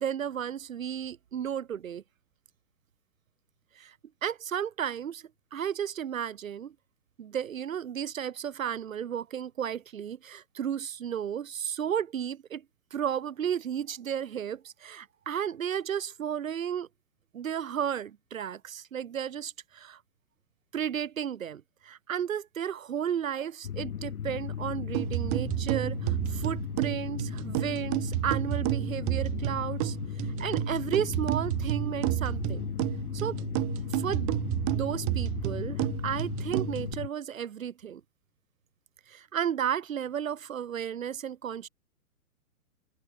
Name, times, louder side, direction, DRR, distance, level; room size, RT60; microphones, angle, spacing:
voice 1, 0.0-2.0 3.8-4.0 4.2-6.8 7.2-12.7 12.9-16.9 17.3-20.0 20.7-30.0 30.4-32.7 33.1-33.4 33.9-34.3 34.7-38.0 39.1-41.7, right 9 dB, 60° right, 3.5 m, -33 dB
sound 1, 23.6-37.1, left 9 dB, 75° left, 2.5 m, -36 dB
sound 2, 24.9-36.9, right 40 dB or more, 15° right, 1.9 m, -31 dB
hypercardioid pair, 180°, 44 cm